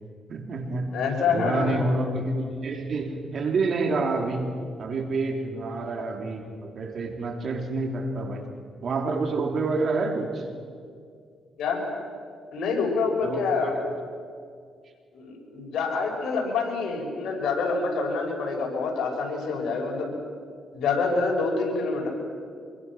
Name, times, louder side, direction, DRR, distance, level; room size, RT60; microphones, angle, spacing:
voice 1, 0.3-1.0 1.3-4.5 4.8-8.5 8.8-10.5 13.2-13.8, right 3 dB, 55° right, 3 dB, 3.4 m, -28 dB
voice 2, 0.9-1.9 11.6-11.8 12.5-13.7 15.1-20.1 20.7-22.1, left 4 dB, 75° left, 0 dB, 6.0 m, -26 dB
26.0 x 23.0 x 6.3 m, 2.2 s
cardioid pair, 90°, 0 cm